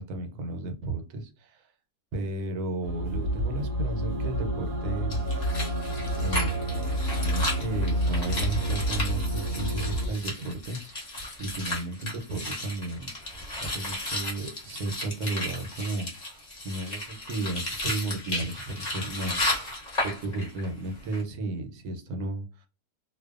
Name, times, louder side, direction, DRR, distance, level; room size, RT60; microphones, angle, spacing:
voice 1, 0.0-1.7 2.1-5.2 6.2-6.9 7.2-13.1 13.6-22.7, right 2 dB, 80° right, 4 dB, 1.1 m, -34 dB
sound 1, 2.8-10.1, equal, 60° right, 0.7 m, -29 dB
sound 2, 5.1-20.7 21.0-21.2, left 1 dB, 35° left, 0.8 m, -34 dB
2.5 x 2.1 x 2.3 m, 0.32 s
omnidirectional pair, 1.6 m